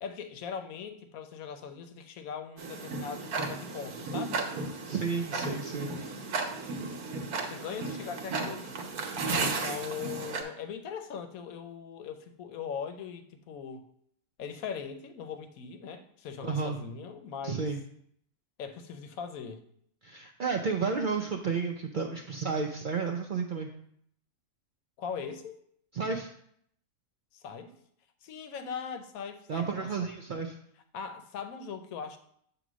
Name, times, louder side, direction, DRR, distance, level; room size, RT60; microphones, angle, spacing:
voice 1, 0.0-4.5 5.3-6.2 6.6-6.8 7.4-8.8 9.4-13.8 14.4-17.7 18.6-19.6 25.0-25.6 27.3-27.8 28.2-30.1 30.9-32.2, left 6 dB, 75° left, 8 dB, 1.1 m, -40 dB
Tick-tock, 2.6-10.4, right 3 dB, 90° right, 1.4 m, -34 dB
voice 2, 4.8-5.9 16.4-16.8 17.4-17.8 20.0-23.7 25.9-26.3 29.5-30.6, right 5 dB, 70° right, 2 dB, 0.4 m, -32 dB
7.8 x 2.9 x 6.1 m, 0.68 s
omnidirectional pair, 1.5 m